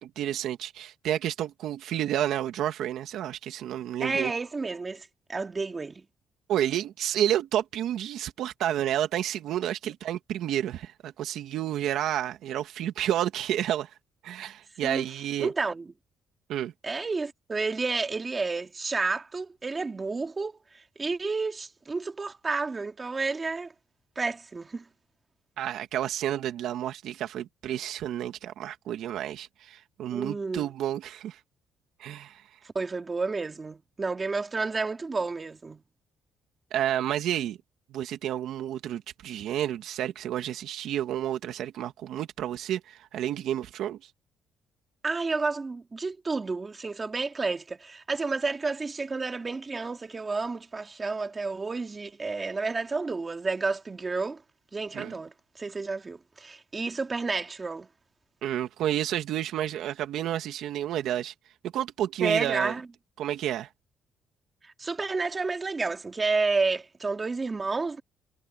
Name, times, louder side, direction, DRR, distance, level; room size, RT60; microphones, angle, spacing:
voice 1, 0.0-4.3 6.5-13.9 14.2-15.5 16.5-16.7 25.6-31.4 32.0-32.4 36.7-37.6 37.9-44.1 54.9-55.2 58.4-61.3 61.7-62.8 63.2-63.7, right 11 dB, 75° right, 2.3 m, -30 dB
voice 2, 4.0-6.0 14.8-15.0 15.4-15.9 16.8-23.7 24.2-24.8 30.1-30.6 32.6-35.8 45.0-54.4 54.7-55.3 55.6-57.9 62.2-62.9 64.6-68.0, right 3 dB, 25° right, 2.2 m, -30 dB
cardioid pair, 120°, 0 cm